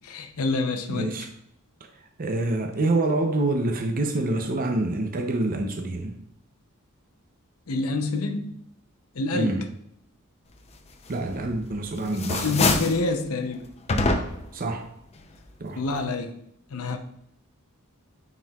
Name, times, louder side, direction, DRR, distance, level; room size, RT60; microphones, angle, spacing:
voice 1, 0.0-1.1 7.7-8.6 9.1-9.6 12.4-13.7 15.8-16.3 16.7-17.0, left 3 dB, 75° left, 6 dB, 0.7 m, -27 dB
voice 2, 0.9-1.3 2.2-6.1 9.3-9.6 11.1-12.8 14.5-14.9 15.6-15.8, right 2 dB, 40° right, 4 dB, 0.6 m, -26 dB
sound 1, 11.3-11.8 12.1-13.0 13.9-14.6, left 2 dB, 30° left, 0.6 m, -24 dB
9.4 x 4.5 x 2.4 m, 0.75 s
head